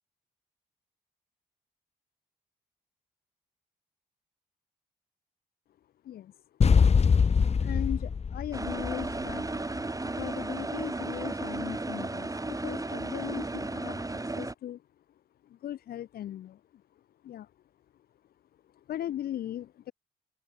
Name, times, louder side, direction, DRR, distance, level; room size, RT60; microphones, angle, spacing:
voice 1, 6.0-6.4 7.6-9.7 10.0-14.8 15.4-16.8 17.2-17.5 18.7-19.9, left 11 dB, 80° left, 7.1 m, -39 dB
sound 1, 6.6-9.6, left 6 dB, 45° left, 1.1 m, -23 dB
sound 2, 8.5-14.5, right 2 dB, 20° right, 4.1 m, -34 dB
open air
supercardioid pair, 55°, 15 cm